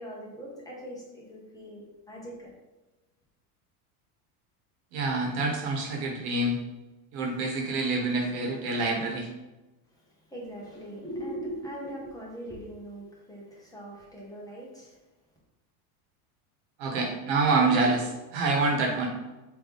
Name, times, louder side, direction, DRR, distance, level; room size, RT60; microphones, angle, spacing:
voice 1, 0.0-2.5 9.9-15.0, right 1 dB, 10° left, -5 dB, 1.2 m, -41 dB
voice 2, 4.9-6.6 7.1-9.3 16.8-19.1, right 3 dB, 65° right, 1 dB, 1.3 m, -26 dB
3.9 x 3.0 x 3.5 m, 1.1 s
supercardioid pair, 125°, 44 cm